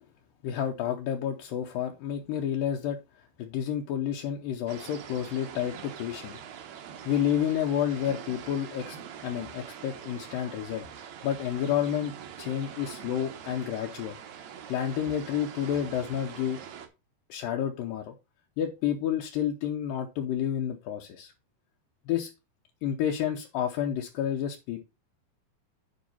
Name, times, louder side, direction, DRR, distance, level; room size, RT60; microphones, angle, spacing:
voice 1, 0.4-3.0 3.4-6.4 7.1-9.0 9.2-14.2 14.7-16.6 17.3-18.1 18.6-21.3 22.1-22.3 22.8-24.8, left 9 dB, 75° left, 2 dB, 2.4 m, -30 dB
sound 1, 4.7-16.9, right 8 dB, 65° right, 2.0 m, -44 dB
9.5 x 3.6 x 5.5 m, 0.27 s
omnidirectional pair, 4.2 m